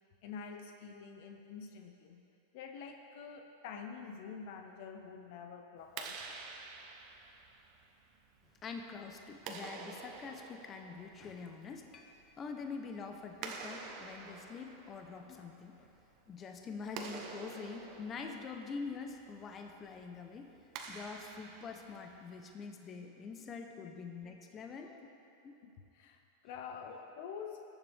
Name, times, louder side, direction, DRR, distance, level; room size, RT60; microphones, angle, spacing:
voice 1, 0.2-2.2 2.5-6.2 23.8-23.9 25.0-25.1 25.6-27.6, left 6 dB, 60° left, 4 dB, 0.8 m, -47 dB
Clapping, 5.8-22.5, right 5 dB, 50° right, 1.1 m, -50 dB
voice 2, 8.6-15.9 16.3-20.5 20.9-25.0 25.4-25.5 26.9-27.0, left 5 dB, 30° left, 4 dB, 0.9 m, -45 dB
17.5 x 7.2 x 3.6 m, 2.7 s
hypercardioid pair, 115°, 0 cm